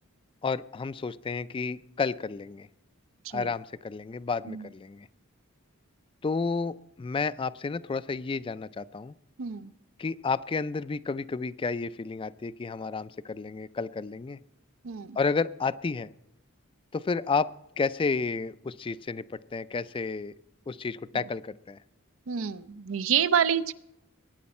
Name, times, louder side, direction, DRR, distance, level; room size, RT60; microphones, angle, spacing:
voice 1, 0.4-2.7 3.3-5.1 6.2-9.1 10.0-14.4 15.2-16.1 16.9-17.5 17.8-20.3 20.7-21.8, left 4 dB, 25° left, 15 dB, 0.4 m, -31 dB
voice 2, 9.4-9.7 14.8-15.2 22.3-23.7, right 8 dB, 70° right, 14 dB, 0.5 m, -28 dB
20.5 x 9.5 x 4.3 m, 0.82 s
head